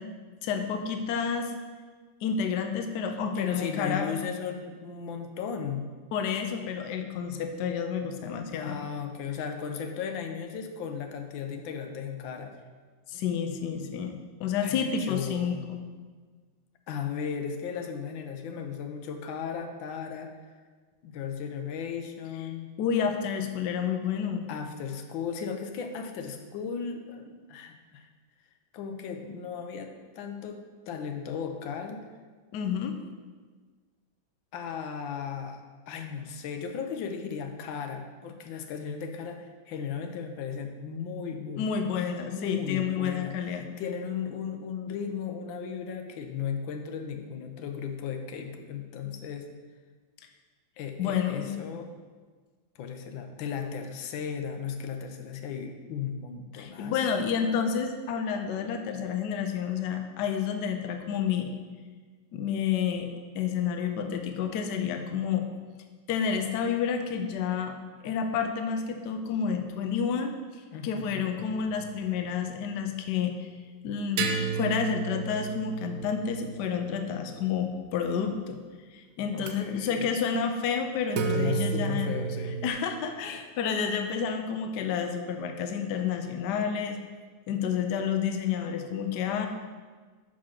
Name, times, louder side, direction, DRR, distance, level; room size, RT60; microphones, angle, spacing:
voice 1, 0.4-1.5 2.2-4.2 6.1-8.8 13.1-15.8 22.8-24.4 32.5-32.9 41.6-43.7 51.0-51.6 56.6-61.5 62.3-65.4 66.1-67.8 68.0-70.3 70.8-73.5 73.8-78.6 78.9-82.1 82.6-87.0 87.5-89.5, left 7 dB, 70° left, 5 dB, 1.2 m, -30 dB
voice 2, 3.1-5.8 8.6-12.5 14.6-15.6 16.9-20.4 21.0-22.7 24.5-28.1 28.7-32.1 34.5-49.5 50.8-51.9 52.8-57.1 70.7-71.4 79.3-80.1 81.3-82.6, left 6 dB, 90° left, 5 dB, 1.4 m, -36 dB
sound 1, 71.4-72.6 74.2-77.9 79.4-79.5 81.1-82.7, right 6 dB, 70° right, 0.8 m, -33 dB
5.9 x 4.9 x 5.7 m, 1.4 s
omnidirectional pair, 2.1 m